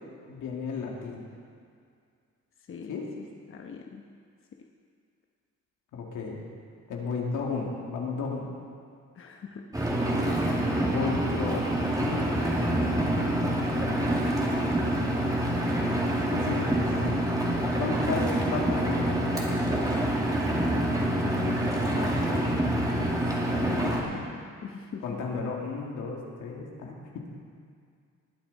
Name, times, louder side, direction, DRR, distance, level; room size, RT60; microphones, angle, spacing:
voice 1, 0.3-1.2 2.9-3.0 5.9-6.4 6.9-8.5 10.8-11.7 12.0-14.1 16.3-17.3 17.8-19.4 23.8-23.9 25.0-27.2, left 4 dB, 80° left, -1 dB, 2.4 m, -34 dB
voice 2, 2.7-4.1 9.1-9.7 21.2-22.6 23.5-24.0 24.6-25.2, left 6 dB, 45° left, 2 dB, 1.0 m, -41 dB
Engine, 9.7-24.0, right 1 dB, 10° right, 2.2 m, -26 dB
19.5 x 8.9 x 4.1 m, 2.3 s
cardioid pair, 90°, 30 cm